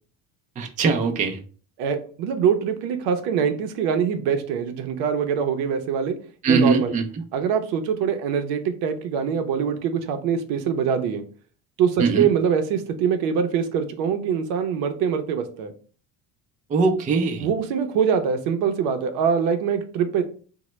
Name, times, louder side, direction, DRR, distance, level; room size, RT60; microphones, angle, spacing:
voice 1, 0.6-1.4 6.4-7.1 12.0-12.3 16.7-17.5, right 4 dB, 20° right, 4 dB, 0.4 m, -21 dB
voice 2, 1.8-6.2 6.5-6.9 7.3-11.2 11.8-15.7 17.4-20.2, right 7 dB, 85° right, 7 dB, 0.6 m, -23 dB
3.0 x 2.1 x 3.0 m, 0.41 s
cardioid pair, 120°, 36 cm